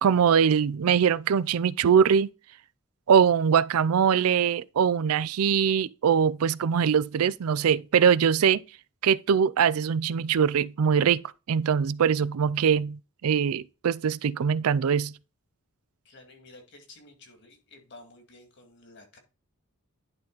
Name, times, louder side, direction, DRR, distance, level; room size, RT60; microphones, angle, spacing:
voice 1, 0.0-2.3 3.1-8.6 9.0-11.2 11.5-15.1, right 7 dB, 80° right, 0.4 m, -22 dB
voice 2, 16.0-19.2, left 2 dB, 55° left, 2.2 m, -52 dB
11.0 x 3.9 x 4.0 m
head